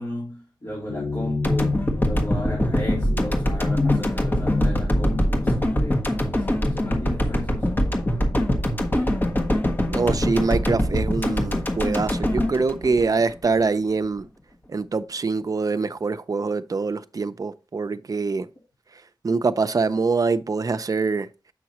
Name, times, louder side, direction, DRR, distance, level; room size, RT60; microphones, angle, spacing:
voice 1, 0.0-8.0, left 1 dB, 45° left, 3.3 m, -35 dB
sound 1, 0.9-7.5, left 3 dB, 85° left, 1.2 m, -29 dB
sound 2, 1.4-13.6, equal, 25° left, 1.4 m, -23 dB
voice 2, 9.9-14.3 14.7-18.5 19.2-21.3, right 4 dB, 45° right, 0.5 m, -24 dB
7.9 x 6.0 x 2.9 m
wide cardioid pair, 110°, 8 cm